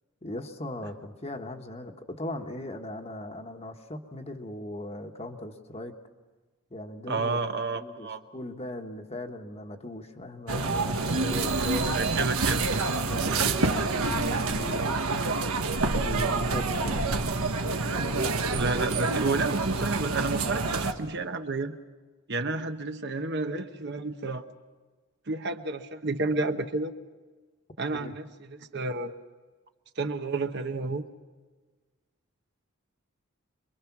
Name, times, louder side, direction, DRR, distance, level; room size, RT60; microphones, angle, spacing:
voice 1, 0.2-5.9 6.7-7.5 7.7-12.0 13.0-14.8 15.8-17.2 27.9-28.1, left 1 dB, 30° left, 5 dB, 1.2 m, -39 dB
voice 2, 7.1-8.2 12.0-12.7 18.6-21.8 22.3-24.5 25.3-27.0 27.8-29.1 30.0-31.1, right 3 dB, 50° right, 8 dB, 1.0 m, -30 dB
sound 1, 10.5-20.9, right 3 dB, 90° right, 1.5 m, -27 dB
26.5 x 22.5 x 6.0 m, 1.4 s
head